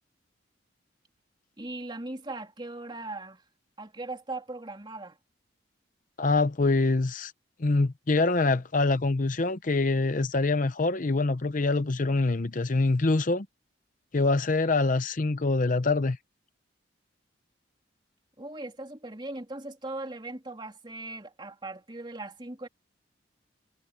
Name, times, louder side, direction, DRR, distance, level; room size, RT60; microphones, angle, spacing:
voice 1, 1.6-3.4 3.8-5.2 18.4-22.7, right 2 dB, 25° right, 3.2 m, -39 dB
voice 2, 6.2-7.3 7.6-13.5 14.1-16.2, left 3 dB, 45° left, 0.7 m, -25 dB
head